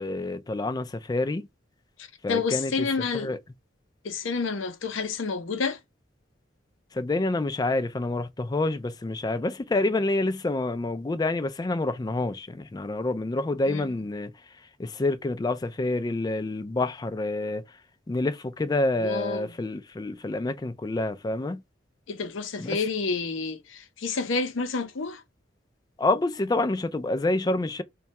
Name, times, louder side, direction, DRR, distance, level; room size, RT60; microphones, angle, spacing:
voice 1, 0.0-1.5 2.2-2.9 3.1-3.4 6.9-14.3 14.8-17.6 18.1-21.6 22.6-22.8 26.0-27.8, left 2 dB, 20° left, 0.3 m, -27 dB
voice 2, 2.3-3.3 4.0-5.8 13.7-13.9 19.0-19.5 22.1-25.2, left 4 dB, 75° left, 0.6 m, -29 dB
2.7 x 2.3 x 4.1 m
head